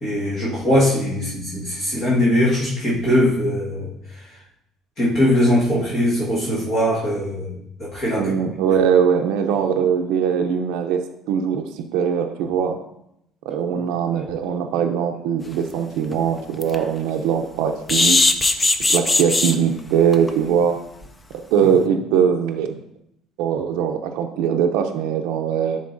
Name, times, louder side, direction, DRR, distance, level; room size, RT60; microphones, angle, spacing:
voice 1, 0.0-3.9 5.0-7.5 7.8-8.3, left 1 dB, 40° left, -7 dB, 1.4 m, -20 dB
voice 2, 8.2-12.8 13.4-18.2 18.9-20.8 21.5-22.7 23.4-25.8, right 7 dB, 85° right, 4 dB, 0.5 m, -21 dB
sound 1, 15.6-15.7 16.1-16.2 16.6-16.8 17.9-19.5 20.1-20.3 20.6-20.7 21.0-21.1, left 2 dB, 15° left, 0.4 m, -18 dB
10.5 x 3.8 x 2.6 m, 0.79 s
cardioid pair, 145°, 0 cm